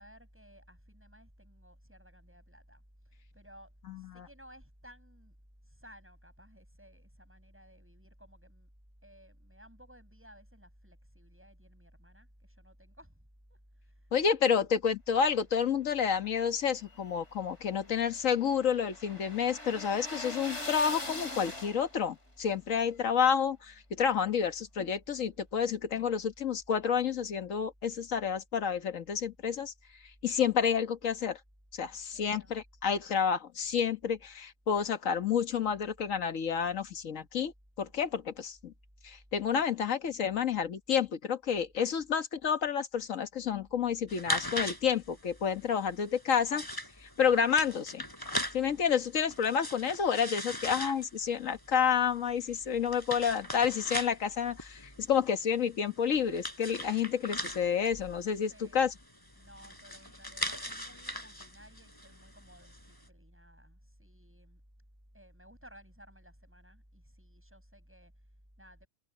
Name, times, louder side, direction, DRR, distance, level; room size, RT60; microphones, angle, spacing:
voice 1, 0.0-5.4 5.6-8.7 9.0-14.6 31.9-32.6 35.7-35.8 58.3-58.8 59.3-64.6 65.1-68.9, equal, 10° right, 8.1 m, -56 dB
voice 2, 14.1-29.7 30.2-31.4 31.7-38.7 39.0-46.7 47.0-48.0 48.5-58.9, left 7 dB, 70° left, 1.7 m, -30 dB
sound 1, 16.7-22.1, left 2 dB, 55° left, 4.7 m, -42 dB
sound 2, 44.1-63.0, left 1 dB, 15° left, 4.1 m, -40 dB
omnidirectional pair, 1.4 m